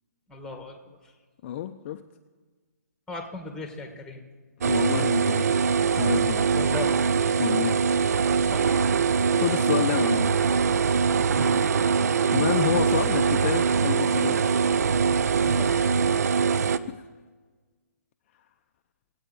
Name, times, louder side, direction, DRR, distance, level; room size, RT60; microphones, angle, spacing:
voice 1, 0.3-0.8 1.0-1.1 3.1-4.2 6.5-7.0 8.5-8.7 11.4-11.6 15.4-15.8, left 3 dB, 5° left, 4 dB, 1.3 m, -37 dB
voice 2, 1.4-2.0 4.6-5.6 6.0-6.5 7.4-7.8 9.3-10.3 12.3-14.5 16.5-17.0, left 11 dB, 40° left, 7 dB, 0.4 m, -29 dB
sound 1, 4.6-16.8, right 6 dB, 70° right, 0.5 m, -23 dB
18.5 x 8.4 x 4.1 m, 1.4 s
hypercardioid pair, 135°, 9 cm